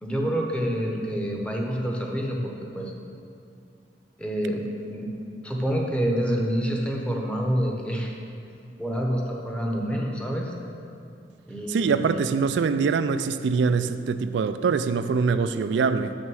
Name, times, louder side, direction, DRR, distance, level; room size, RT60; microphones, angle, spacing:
voice 1, 0.0-2.9 4.2-4.6 4.9-5.1 5.4-8.1 8.8-10.5 11.5-12.2, equal, 5° left, 0 dB, 0.9 m, -27 dB
voice 2, 11.7-16.1, right 5 dB, 85° right, 11 dB, 0.3 m, -24 dB
6.5 x 6.2 x 6.2 m, 2.5 s
head